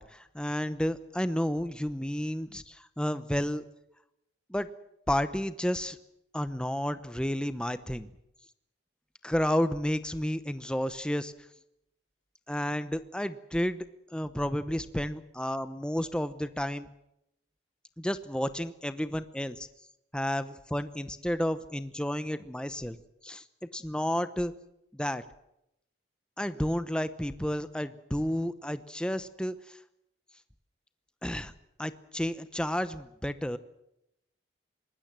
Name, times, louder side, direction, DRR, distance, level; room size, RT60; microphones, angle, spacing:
voice 1, 0.0-3.6 4.5-4.7 5.1-6.0 6.3-8.1 9.2-11.3 12.5-13.8 14.1-16.9 18.0-19.7 20.1-23.0 23.2-23.4 23.7-24.5 24.9-25.2 26.4-29.8 31.2-31.5 31.8-33.6, equal, 5° left, 12 dB, 0.9 m, -31 dB
24.5 x 20.5 x 7.6 m, 0.83 s
head